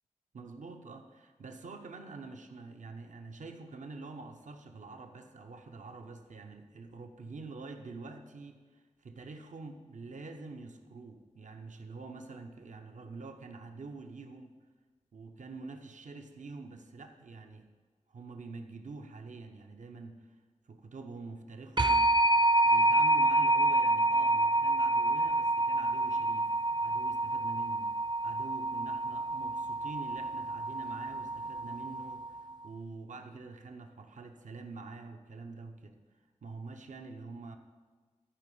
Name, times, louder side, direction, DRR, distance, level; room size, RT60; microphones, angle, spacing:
voice 1, 0.3-14.6 15.1-17.7 18.1-20.4 20.7-22.1 22.6-27.9 28.2-36.0 36.4-37.6, right 3 dB, 80° right, 5 dB, 0.7 m, -46 dB
sound 1, 21.8-32.4, right 2 dB, 35° right, 0.4 m, -28 dB
13.0 x 5.0 x 5.4 m, 1.4 s
wide cardioid pair, 60°, 13 cm